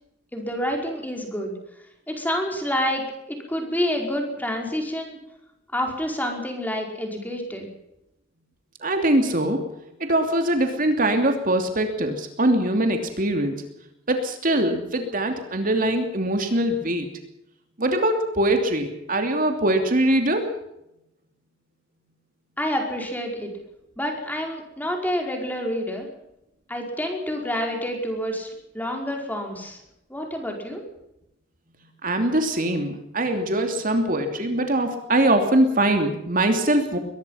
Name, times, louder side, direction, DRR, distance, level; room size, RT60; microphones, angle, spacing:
voice 1, 0.3-1.5 2.1-5.2 5.7-7.7 22.6-23.5 24.0-26.1 26.7-29.8 30.1-30.8, equal, 10° left, 2 dB, 5.0 m, -28 dB
voice 2, 8.8-9.6 10.0-13.5 14.1-17.1 17.8-20.5 32.0-37.0, right 1 dB, 45° right, 5 dB, 2.9 m, -22 dB
22.5 x 20.0 x 5.8 m, 0.84 s
head